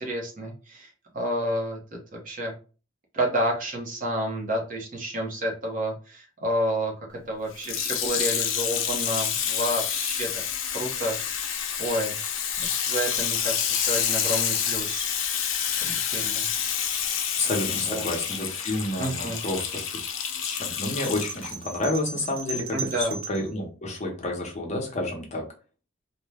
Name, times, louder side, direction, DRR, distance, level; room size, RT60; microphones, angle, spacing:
voice 1, 0.0-2.5 3.1-10.3 10.7-11.5 11.8-12.2 12.8-15.1 15.8-16.5 17.9-18.1 19.0-19.4 22.7-23.1, equal, 45° right, 1 dB, 0.8 m, -30 dB
Water tap faucet / Sink (filling or washing), 7.5-21.5 22.2-22.3, left 8 dB, 90° left, 0.5 m, -28 dB
voice 2, 17.4-19.8 20.4-25.4, left 2 dB, 35° left, 0 dB, 0.8 m, -30 dB
sound 1, 21.0-23.5, right 4 dB, 75° right, 0.8 m, -36 dB
2.7 x 2.2 x 3.4 m, 0.35 s
head